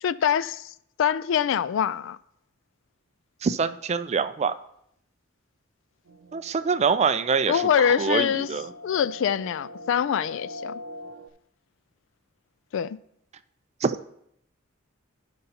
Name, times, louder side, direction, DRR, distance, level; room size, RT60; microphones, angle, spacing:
voice 1, 0.0-0.7 1.0-2.2 7.5-8.5 8.8-10.8 12.7-13.0, left 8 dB, 70° left, 0.3 m, -24 dB
voice 2, 3.4-4.6 6.3-8.7 13.8-14.0, right 5 dB, 35° right, 0.4 m, -25 dB
sound 1, 6.1-11.3, left 1 dB, 85° right, 0.5 m, -43 dB
16.0 x 5.4 x 2.8 m
head